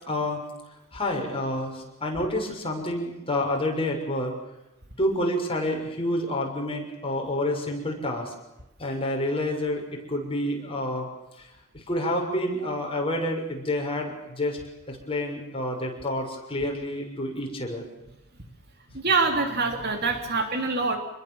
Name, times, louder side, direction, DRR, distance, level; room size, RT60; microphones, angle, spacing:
voice 1, 0.1-0.4 0.9-4.3 5.0-8.3 8.8-11.1 11.4-11.5 11.7-14.6 14.9-17.8, left 1 dB, 25° left, 1 dB, 6.4 m, -28 dB
voice 2, 18.9-21.0, right 4 dB, 50° right, 5 dB, 3.4 m, -25 dB
27.5 x 21.5 x 7.3 m, 0.90 s
head